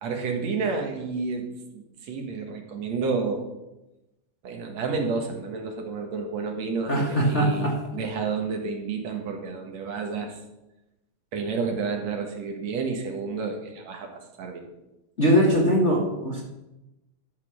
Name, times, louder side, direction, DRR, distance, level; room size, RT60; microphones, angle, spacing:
voice 1, 0.0-3.5 4.4-10.4 11.3-14.7, right 4 dB, 65° right, 3 dB, 2.6 m, -30 dB
voice 2, 6.9-7.8 15.2-16.4, equal, 30° left, -3 dB, 1.7 m, -21 dB
12.0 x 6.7 x 6.4 m, 0.95 s
omnidirectional pair, 3.4 m